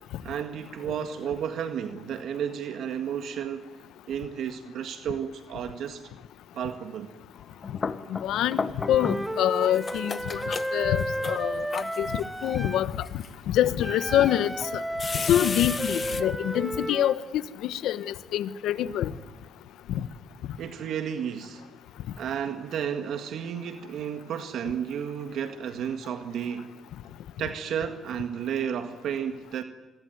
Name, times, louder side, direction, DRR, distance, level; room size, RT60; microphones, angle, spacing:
voice 1, 0.2-3.7 4.1-6.0 6.5-7.1 20.6-21.8 22.2-26.7 27.4-29.6, right 8 dB, 75° right, 7 dB, 1.8 m, -32 dB
sound 1, 7.4-9.4 9.6-12.2 12.8-13.3 14.0-14.1 15.0-16.2, left 5 dB, 40° left, 1.4 m, -34 dB
voice 2, 8.1-8.6 8.9-13.1 13.5-14.8 15.2-19.1 19.9-20.1, left 11 dB, 85° left, 14 dB, 1.1 m, -26 dB
Wind instrument woodwind instrument, 8.8-12.9 13.8-17.2, right 1 dB, 5° right, 0.9 m, -33 dB
27.0 x 21.5 x 9.5 m, 1.1 s
cardioid pair, 90°, 0 cm